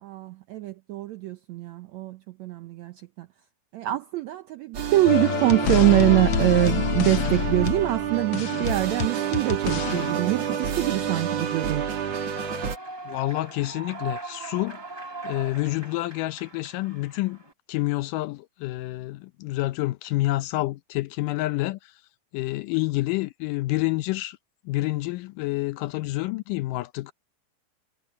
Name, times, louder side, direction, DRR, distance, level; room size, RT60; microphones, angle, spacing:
voice 1, 0.0-3.3 3.7-11.9, right 16 dB, 80° right, 1.6 m, -24 dB
sound 1, 4.7-12.8, right 8 dB, 50° right, 2.9 m, -29 dB
sound 2, 5.0-10.1, left 8 dB, 65° left, 1.5 m, -27 dB
Human voice / Clapping / Cheering, 11.5-17.5, right 3 dB, 20° right, 0.7 m, -40 dB
voice 2, 13.1-14.8 15.2-17.4 17.7-22.0 22.3-24.4 24.7-27.1, left 19 dB, 80° left, 2.0 m, -28 dB
omnidirectional pair, 4.1 m